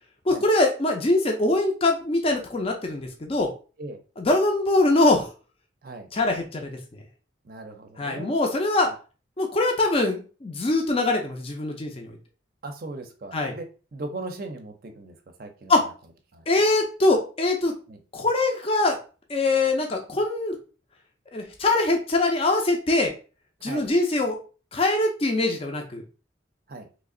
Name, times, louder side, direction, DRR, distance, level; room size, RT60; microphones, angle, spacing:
voice 1, 0.3-3.5 4.2-5.3 6.1-6.7 8.0-8.9 9.4-12.1 13.3-13.5 15.7-15.8 16.5-17.7 18.1-19.0 19.3-20.6 21.3-23.1 23.6-24.4 24.7-26.0, left 2 dB, 30° left, 3 dB, 0.5 m, -23 dB
voice 2, 7.4-8.4 12.6-13.7 13.9-15.7 16.3-16.4 17.9-18.0 23.6-23.9 26.7-26.9, right 2 dB, 50° right, 5 dB, 0.5 m, -38 dB
3.1 x 2.5 x 3.7 m, 0.35 s
head